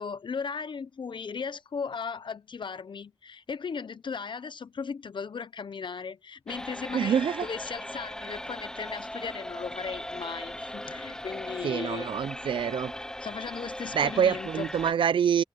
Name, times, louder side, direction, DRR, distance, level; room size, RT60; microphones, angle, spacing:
voice 1, 0.0-12.1 13.2-14.7, left 5 dB, 75° left, 0.8 m, -37 dB
sound 1, 6.5-14.9, left 1 dB, 5° left, 0.5 m, -38 dB
voice 2, 6.9-7.5 11.6-12.9 13.9-15.4, right 8 dB, 90° right, 0.4 m, -26 dB
cardioid pair, 40°, 8 cm